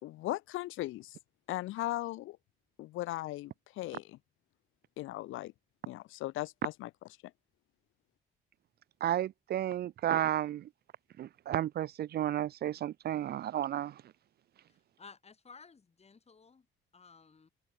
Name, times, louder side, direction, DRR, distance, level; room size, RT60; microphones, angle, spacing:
voice 1, 0.0-1.2 1.5-2.4 2.8-4.2 5.0-5.5 5.9-6.9, left 16 dB, 90° left, 1.2 m, -38 dB
voice 2, 9.0-10.7 11.2-13.9, right 12 dB, 55° right, 0.4 m, -32 dB
voice 3, 14.7-16.7 16.9-17.5, left 5 dB, 30° left, 2.6 m, -56 dB
cardioid pair, 90°, 20 cm